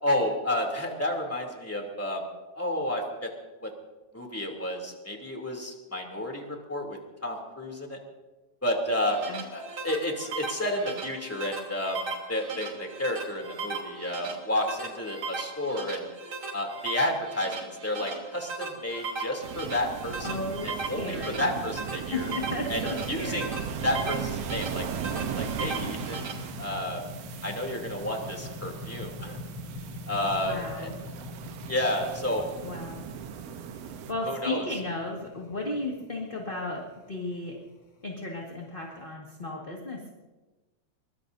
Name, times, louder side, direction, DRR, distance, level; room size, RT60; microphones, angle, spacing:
voice 1, 0.0-2.3 2.5-3.3 3.6-3.7 4.1-8.0 8.6-9.2 9.5-16.0 16.5-22.3 22.7-23.5 23.8-24.8 25.1-26.3 26.6-27.0 27.4-29.4 30.1-30.9 31.7-32.4 34.2-34.7, left 1 dB, 5° left, 1 dB, 2.5 m, -31 dB
sound 1, 8.9-26.3, right 4 dB, 40° right, 3.8 m, -38 dB
sound 2, 19.4-34.1, right 8 dB, 70° right, 1.8 m, -38 dB
voice 2, 20.2-21.5 22.1-23.5 30.2-30.9 32.6-33.0 34.1-37.6 38.0-40.1, left 2 dB, 25° left, -1 dB, 1.5 m, -35 dB
sound 3, 20.4-39.0, left 2 dB, 70° left, 3.4 m, -44 dB
23.5 x 22.5 x 2.7 m, 1.2 s
omnidirectional pair, 3.4 m